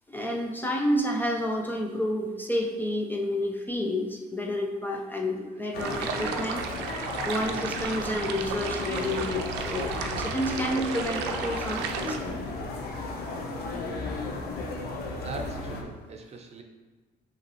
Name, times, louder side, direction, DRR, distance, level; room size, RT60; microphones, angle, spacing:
voice 1, 0.1-6.6 7.2-12.5, left 1 dB, 10° left, 0 dB, 0.4 m, -30 dB
sound 1, 5.7-15.8, left 2 dB, 65° left, 0.7 m, -35 dB
sound 2, 5.8-12.2, right 6 dB, 85° right, 0.5 m, -34 dB
voice 2, 15.1-16.6, right 3 dB, 40° right, 3 dB, 0.6 m, -42 dB
5.2 x 3.0 x 3.0 m, 1.4 s
cardioid pair, 110°, 17 cm